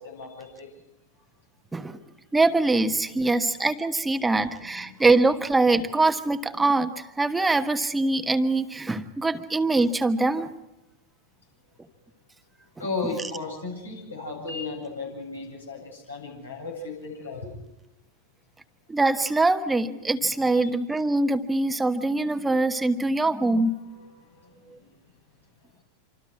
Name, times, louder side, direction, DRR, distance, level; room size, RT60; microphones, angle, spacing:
voice 1, 0.0-0.7 3.1-3.2 4.7-5.0 12.8-17.5 20.5-20.7 24.3-24.4, left 3 dB, 75° left, 0 dB, 7.8 m, -35 dB
voice 2, 2.3-10.5 18.9-23.8, right 2 dB, 10° right, 8 dB, 1.3 m, -23 dB
27.0 x 26.5 x 4.7 m, 0.90 s
figure-of-eight pair, 90°, 0 cm